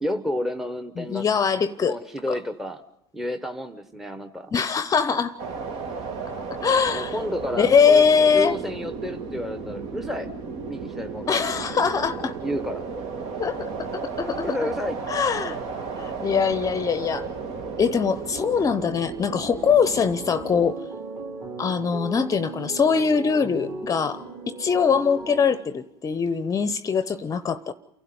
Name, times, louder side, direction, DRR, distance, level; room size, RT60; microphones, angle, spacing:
voice 1, 0.0-1.3 1.8-2.8 3.1-4.5 6.9-8.1 8.3-10.3 10.7-11.8 12.4-12.9 14.4-15.0, left 1 dB, ahead, 10 dB, 1.1 m, -31 dB
voice 2, 1.0-2.0 2.3-2.4 4.5-5.4 6.6-7.2 7.6-8.6 11.3-12.4 13.4-14.7 15.1-15.6 16.0-17.3 17.8-20.8 21.6-27.7, left 6 dB, 25° left, 14 dB, 0.8 m, -22 dB
sound 1, 5.4-20.7, right 5 dB, 55° right, 2.3 m, -34 dB
sound 2, 19.5-26.0, right 3 dB, 35° right, 3.3 m, -37 dB
29.0 x 12.0 x 9.5 m, 0.83 s
hypercardioid pair, 95°, 13 cm